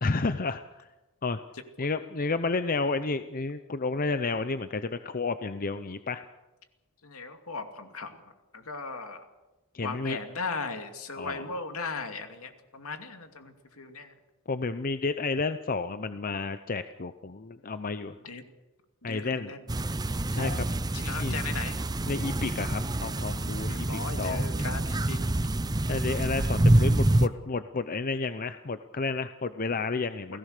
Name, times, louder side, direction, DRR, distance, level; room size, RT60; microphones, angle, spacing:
voice 1, 0.0-0.6 1.2-1.4 1.8-6.2 9.7-10.2 11.2-11.5 14.5-18.1 19.0-19.5 20.3-20.5 21.1-21.4 22.1-24.4 25.9-30.4, left 3 dB, 40° left, 11 dB, 0.7 m, -31 dB
voice 2, 7.0-8.1 8.5-9.2 9.8-14.1 18.2-18.4 19.0-19.6 20.4-21.7 23.6-25.2 30.3-30.4, left 4 dB, 70° left, 6 dB, 2.6 m, -37 dB
sound 1, 19.7-27.3, right 1 dB, 15° right, 0.6 m, -27 dB
28.5 x 18.0 x 6.7 m, 1.1 s
head